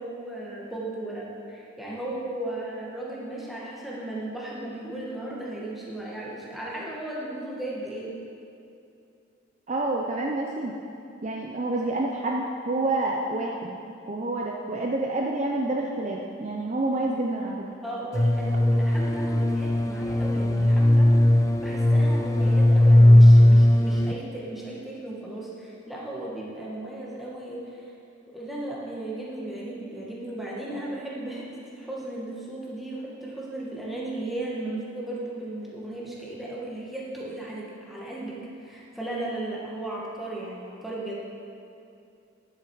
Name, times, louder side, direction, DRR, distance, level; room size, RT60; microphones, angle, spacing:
voice 1, 0.0-8.1 17.8-21.2 21.6-27.9 28.3-41.2, right 1 dB, ahead, -6 dB, 1.5 m, -36 dB
voice 2, 9.7-10.8 11.2-13.8 14.1-17.7, right 2 dB, 35° right, 0 dB, 0.5 m, -28 dB
sound 1, 18.1-24.1, left 1 dB, 15° left, 0.4 m, -18 dB
10.5 x 8.0 x 4.7 m, 2.6 s
head